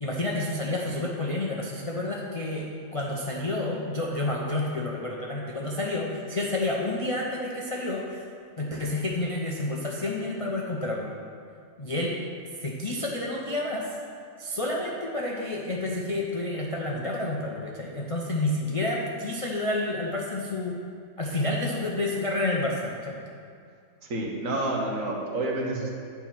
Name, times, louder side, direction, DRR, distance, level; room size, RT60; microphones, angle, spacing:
voice 1, 0.0-8.3 8.6-11.1 11.8-12.2 12.6-13.9 14.4-20.8 21.2-23.2, left 2 dB, 40° left, -3 dB, 0.4 m, -29 dB
voice 2, 24.0-25.9, right 2 dB, 70° right, -1 dB, 1.5 m, -29 dB
9.1 x 4.5 x 5.9 m, 2.3 s
omnidirectional pair, 1.5 m